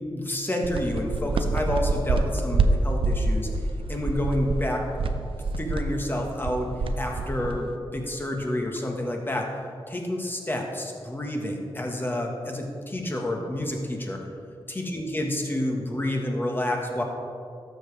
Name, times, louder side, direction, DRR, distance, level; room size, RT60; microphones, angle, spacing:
voice 1, 0.1-3.5 3.9-4.9 5.6-6.7 7.0-9.5 9.9-14.2 14.7-17.0, left 1 dB, 20° left, 1 dB, 1.5 m, -29 dB
sound 1, 0.6-7.8, right 3 dB, 70° right, 0.6 m, -26 dB
12.5 x 7.2 x 3.4 m, 2.4 s
cardioid pair, 75°, 9 cm